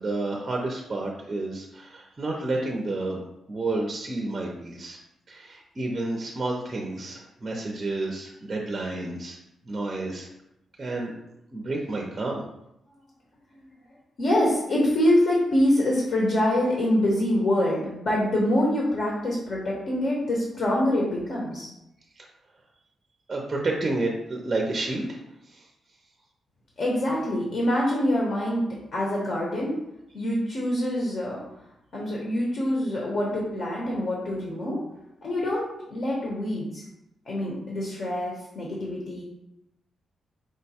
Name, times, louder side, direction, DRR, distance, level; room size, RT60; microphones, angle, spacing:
voice 1, 0.0-5.0 5.3-9.4 9.6-10.3 10.8-11.1 11.5-12.4 22.2-22.3 23.3-25.7, right 2 dB, 25° right, 0 dB, 0.5 m, -30 dB
voice 2, 14.2-21.7 26.8-28.6 28.9-29.7 30.1-31.4 31.9-34.8 35.2-35.6 35.9-36.8 37.2-39.2, left 1 dB, 50° left, -3 dB, 1.0 m, -25 dB
5.0 x 2.2 x 4.2 m, 0.85 s
wide cardioid pair, 155°, 0 cm